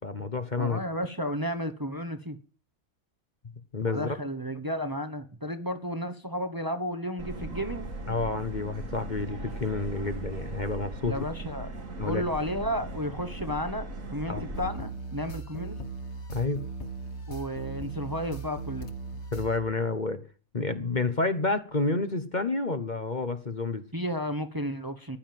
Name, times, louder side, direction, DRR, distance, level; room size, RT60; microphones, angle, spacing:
voice 1, 0.0-0.8 3.7-4.1 8.1-11.1 12.0-12.2 14.3-14.4 16.3-16.6 19.3-20.2 20.5-23.8, left 3 dB, 35° left, 1.3 m, -29 dB
voice 2, 0.6-2.4 3.8-7.9 11.0-11.7 12.0-15.8 17.3-18.9 23.9-25.2, equal, 15° right, 1.3 m, -33 dB
Subway metro underground, 7.2-14.7, right 2 dB, 70° right, 2.9 m, -38 dB
sound 1, 14.5-19.6, right 3 dB, 55° left, 2.1 m, -38 dB
15.0 x 11.0 x 7.7 m
omnidirectional pair, 1.5 m